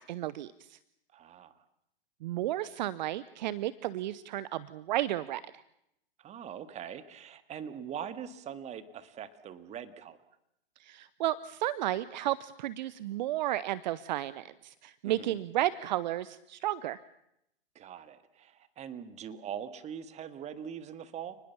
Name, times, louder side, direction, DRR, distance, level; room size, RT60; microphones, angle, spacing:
voice 1, 0.1-0.8 2.2-5.4 10.8-17.0, right 14 dB, 50° right, 18 dB, 0.8 m, -33 dB
voice 2, 1.1-1.5 6.2-10.2 15.0-15.4 17.8-21.4, right 8 dB, 25° right, 12 dB, 1.9 m, -42 dB
30.0 x 20.0 x 7.2 m, 0.79 s
hypercardioid pair, 115°, 29 cm